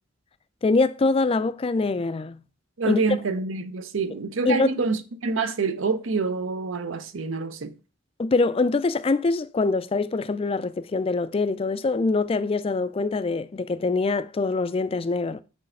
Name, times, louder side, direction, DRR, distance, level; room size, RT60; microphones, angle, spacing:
voice 1, 0.6-2.4 2.8-3.2 4.5-4.8 8.2-15.4, left 3 dB, 25° left, 0.3 m, -24 dB
voice 2, 2.8-7.7, right 4 dB, 70° right, 0.6 m, -27 dB
6.2 x 3.3 x 5.4 m
head